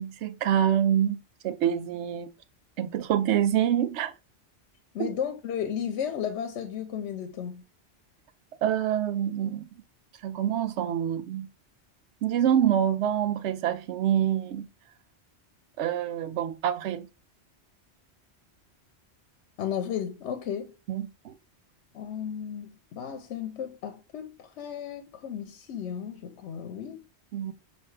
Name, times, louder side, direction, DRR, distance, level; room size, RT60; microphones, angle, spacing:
voice 1, 0.0-2.3 2.8-4.1 5.0-5.1 8.6-9.7 10.2-11.5 12.2-14.7 15.8-17.1 20.9-21.3 27.3-27.5, right 10 dB, 85° right, 0.9 m, -26 dB
voice 2, 4.9-7.6 19.6-20.7 21.9-27.0, left 8 dB, 85° left, 0.9 m, -34 dB
5.7 x 2.7 x 3.1 m
omnidirectional pair, 1.1 m